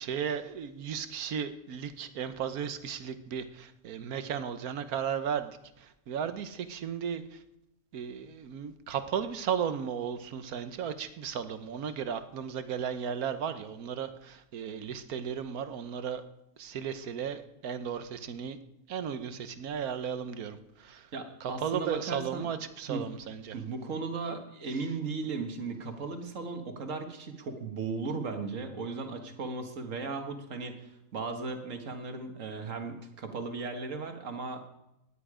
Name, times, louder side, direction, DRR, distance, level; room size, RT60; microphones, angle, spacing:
voice 1, 0.0-7.4 7.9-16.2 16.6-18.6 18.9-21.1 21.4-23.6, right 7 dB, 90° right, 11 dB, 1.4 m, -35 dB
voice 2, 21.1-22.5 22.9-23.1 23.5-34.7, right 4 dB, 60° right, 6 dB, 1.9 m, -36 dB
18.5 x 10.5 x 5.0 m, 0.87 s
omnidirectional pair, 1.5 m